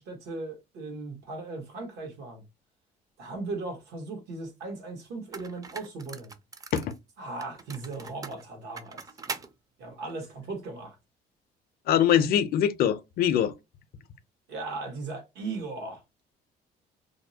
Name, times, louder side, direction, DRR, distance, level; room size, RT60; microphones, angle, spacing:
voice 1, 0.0-2.4 3.2-6.3 7.2-9.0 9.8-10.9 14.5-16.0, right 3 dB, 80° right, 1.2 m, -37 dB
sound 1, 4.7-4.8 5.3-7.0 7.4-9.5, right 4 dB, 20° right, 0.4 m, -41 dB
voice 2, 11.9-13.5, left 10 dB, 65° left, 0.5 m, -23 dB
2.6 x 2.0 x 2.7 m
cardioid pair, 110°, 17 cm